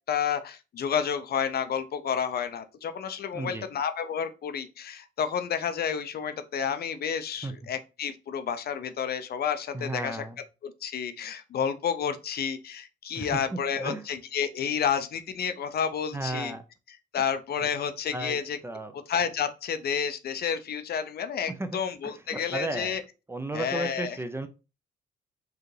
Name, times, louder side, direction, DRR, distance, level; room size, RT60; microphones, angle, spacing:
voice 1, 0.1-10.2 10.6-16.5 17.1-18.6 19.1-23.0 23.5-24.2, left 7 dB, 55° left, 0.5 m, -30 dB
voice 2, 3.3-3.7 7.4-7.5 9.7-10.4 13.2-14.0 16.1-16.6 18.1-18.4 18.6-18.9 21.5-22.9 23.3-24.5, right 2 dB, 10° right, 0.4 m, -34 dB
4.6 x 2.4 x 3.2 m
cardioid pair, 90°, 20 cm